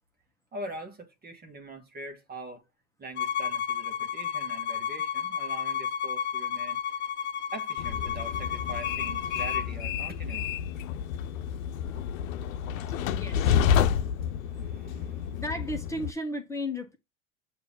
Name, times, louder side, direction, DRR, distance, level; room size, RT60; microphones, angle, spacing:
voice 1, 0.5-2.6 3.0-6.8 7.5-10.6 14.3-15.4, right 1 dB, 25° right, 1.4 m, -43 dB
Bowed string instrument, 3.2-9.7, left 8 dB, 25° left, 0.8 m, -32 dB
Train, 7.8-16.1, left 8 dB, 80° left, 0.8 m, -29 dB
voice 2, 13.1-13.6 15.4-17.0, left 1 dB, 5° left, 1.3 m, -34 dB
6.8 x 2.8 x 5.3 m
hypercardioid pair, 100°, 40 cm